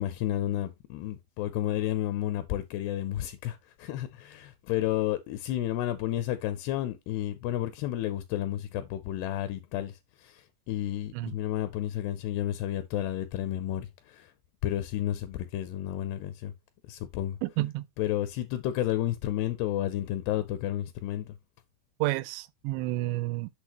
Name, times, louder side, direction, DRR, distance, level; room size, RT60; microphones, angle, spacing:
voice 1, 0.0-14.3 14.6-16.5 16.9-17.4 18.0-21.4, left 13 dB, 80° left, 2.5 m, -31 dB
voice 2, 17.4-17.8 22.0-23.5, right 18 dB, 90° right, 2.8 m, -30 dB
8.2 x 6.0 x 2.9 m
omnidirectional pair, 5.0 m